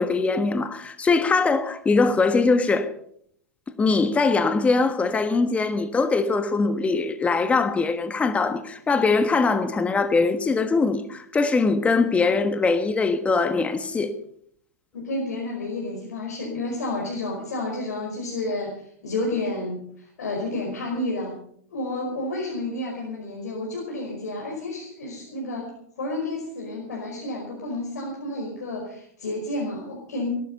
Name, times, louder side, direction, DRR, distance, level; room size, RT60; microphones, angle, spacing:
voice 1, 0.0-2.9 3.8-14.1, left 4 dB, 15° left, 1.3 m, -22 dB
voice 2, 14.9-21.4 21.7-25.7 26.0-30.3, left 2 dB, 80° left, 5.2 m, -30 dB
19.5 x 12.0 x 5.6 m
hypercardioid pair, 115°, 9 cm